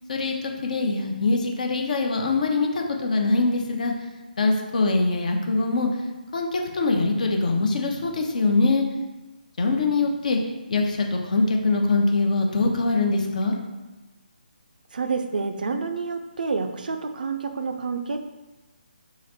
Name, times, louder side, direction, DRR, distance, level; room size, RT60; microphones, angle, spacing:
voice 1, 0.1-3.9 4.4-5.9 6.3-8.9 9.6-10.4 10.7-13.6, left 3 dB, 50° left, 2 dB, 0.6 m, -23 dB
voice 2, 14.9-18.2, right 4 dB, 60° right, 6 dB, 0.4 m, -28 dB
4.0 x 2.5 x 4.2 m, 1.1 s
figure-of-eight pair, 145°, 5 cm